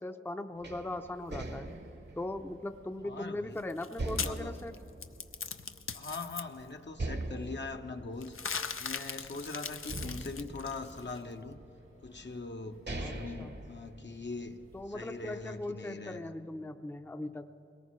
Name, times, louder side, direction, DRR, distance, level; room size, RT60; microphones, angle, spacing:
voice 1, 0.0-1.7 2.2-4.8 13.0-13.6 14.7-17.5, left 2 dB, 10° left, 8 dB, 0.5 m, -39 dB
sound 1, 0.5-15.7, right 1 dB, 85° right, 2.7 m, -60 dB
sound 2, 0.6-3.4 4.0-5.9 6.3-6.4 6.9-9.3 9.9-11.5 12.2-12.3 12.7-14.5, right 2 dB, 55° right, 0.9 m, -41 dB
voice 2, 3.0-3.6 4.1-4.6 5.9-8.3 8.8-11.6 12.0-14.6 14.9-16.3, left 3 dB, 60° left, 5 dB, 0.8 m, -42 dB
sound 3, 3.6-6.4 8.2-11.2, left 6 dB, 85° left, 0.5 m, -39 dB
21.5 x 18.5 x 3.1 m, 2.9 s
wide cardioid pair, 45°, 21 cm